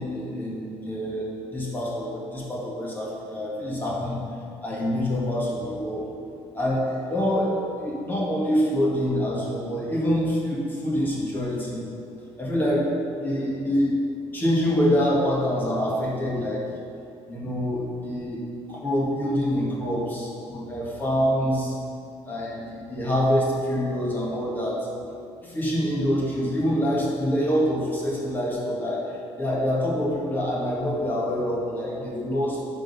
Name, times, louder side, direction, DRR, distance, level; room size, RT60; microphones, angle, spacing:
voice 1, 0.0-4.2 4.6-6.1 6.5-11.8 12.4-13.9 14.3-16.6 17.3-18.4 18.7-21.7 22.2-24.9 25.4-29.0 29.4-32.6, equal, 15° left, -5 dB, 1.8 m, -26 dB
11.0 x 4.0 x 5.4 m, 2.5 s
cardioid pair, 150°, 12 cm